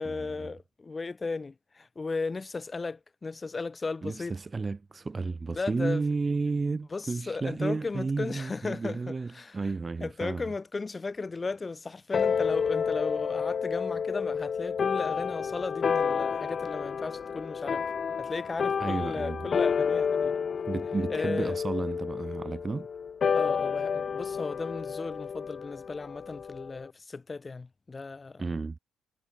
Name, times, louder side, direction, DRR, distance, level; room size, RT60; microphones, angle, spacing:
voice 1, 0.0-4.4 5.5-6.0 6.9-9.7 10.0-17.8 18.2-20.4 21.1-21.6 23.3-28.4, left 3 dB, 25° left, 1.8 m, -35 dB
voice 2, 4.0-10.4 18.8-19.5 20.7-22.9 28.4-28.8, right 4 dB, 30° right, 0.6 m, -32 dB
sound 1, 12.1-26.9, left 6 dB, 45° left, 1.3 m, -30 dB
cardioid pair, 90°, 0 cm